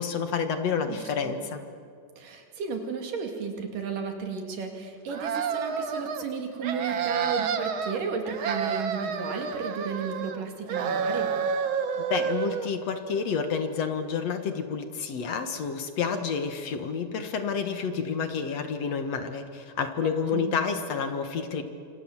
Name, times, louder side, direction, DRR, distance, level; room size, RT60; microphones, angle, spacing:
voice 1, 0.0-1.6 12.1-21.6, left 6 dB, 60° left, 7 dB, 2.4 m, -29 dB
voice 2, 0.9-1.3 2.2-11.3 20.3-20.5, right 5 dB, 80° right, 4 dB, 4.2 m, -34 dB
sound 1, 5.1-6.2 6.6-8.0 8.3-10.4 10.7-12.7, right 6 dB, 55° right, 1.5 m, -29 dB
27.0 x 26.5 x 7.4 m, 2.3 s
omnidirectional pair, 3.7 m